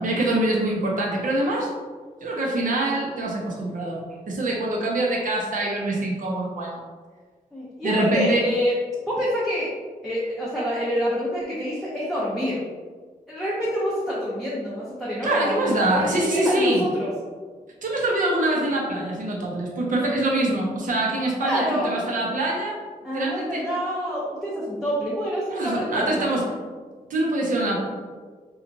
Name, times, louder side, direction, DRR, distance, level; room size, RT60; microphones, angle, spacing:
voice 1, 0.0-1.7 2.2-6.8 7.8-8.4 15.2-16.8 17.8-22.8 23.1-23.6 25.5-26.4 27.1-27.8, right 1 dB, 65° right, -2 dB, 0.7 m, -24 dB
voice 2, 7.5-8.7 9.1-9.7 10.0-12.6 13.3-17.1 21.4-21.9 23.0-26.3, equal, ahead, -8 dB, 0.5 m, -27 dB
2.9 x 2.3 x 2.5 m, 1.5 s
wide cardioid pair, 115°, 15 cm